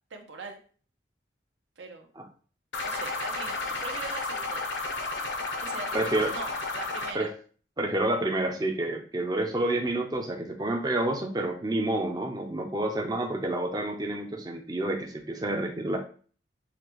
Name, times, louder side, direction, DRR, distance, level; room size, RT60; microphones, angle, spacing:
voice 1, 0.1-0.6 1.8-2.1 2.8-4.6 5.6-7.3, right 4 dB, 80° right, 3 dB, 0.8 m, -41 dB
sound 1, 2.7-7.1, left 3 dB, 75° left, 0.7 m, -32 dB
voice 2, 5.9-6.3 7.1-7.3 7.8-16.0, right 1 dB, 20° right, 2 dB, 0.4 m, -29 dB
6.5 x 2.2 x 3.0 m, 0.42 s
head